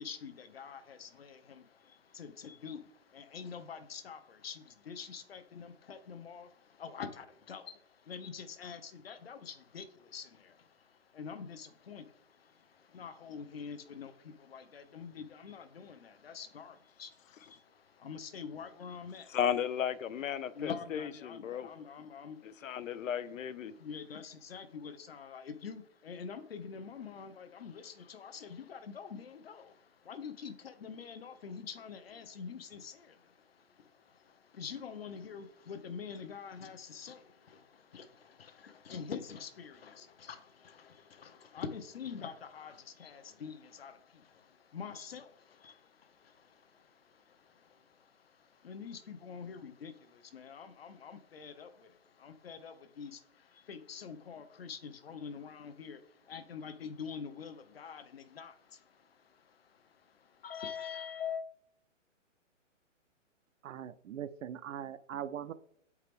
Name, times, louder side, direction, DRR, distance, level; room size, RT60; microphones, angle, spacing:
voice 1, 0.0-19.4 20.5-23.2 23.7-61.4, left 6 dB, 50° left, 0.7 m, -46 dB
voice 2, 19.3-21.7 22.4-23.7, left 9 dB, 90° left, 0.7 m, -35 dB
voice 3, 63.6-65.5, right 9 dB, 80° right, 0.6 m, -41 dB
7.6 x 4.7 x 3.4 m
hypercardioid pair, 180°, 38 cm